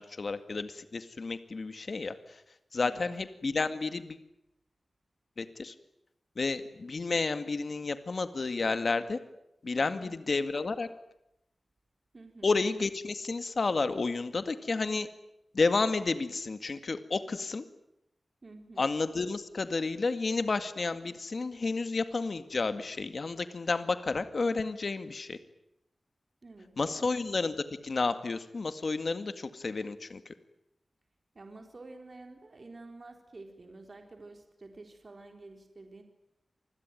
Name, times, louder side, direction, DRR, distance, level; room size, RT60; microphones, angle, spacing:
voice 1, 0.0-2.4 2.7-4.2 5.4-5.7 6.4-9.2 9.6-10.9 12.4-15.1 15.5-17.6 18.8-25.4 26.8-27.5 27.8-30.3, left 3 dB, 55° left, 10 dB, 2.1 m, -31 dB
voice 2, 9.8-10.2 12.1-12.5 18.4-18.9 26.4-27.2 31.3-36.0, right 2 dB, 45° right, 4 dB, 4.1 m, -49 dB
28.0 x 21.0 x 9.2 m, 0.84 s
wide cardioid pair, 120°, 0 cm